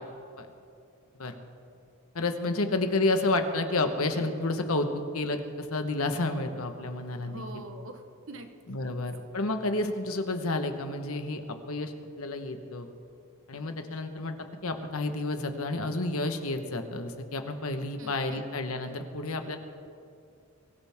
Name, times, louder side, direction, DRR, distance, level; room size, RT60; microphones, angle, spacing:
voice 1, 2.1-7.4 8.7-12.9 13.5-19.6, left 2 dB, 80° left, 6 dB, 1.4 m, -30 dB
voice 2, 7.2-8.5 8.8-9.0 18.0-18.5, right 2 dB, 60° right, 6 dB, 1.3 m, -45 dB
23.5 x 16.5 x 3.7 m, 2.4 s
head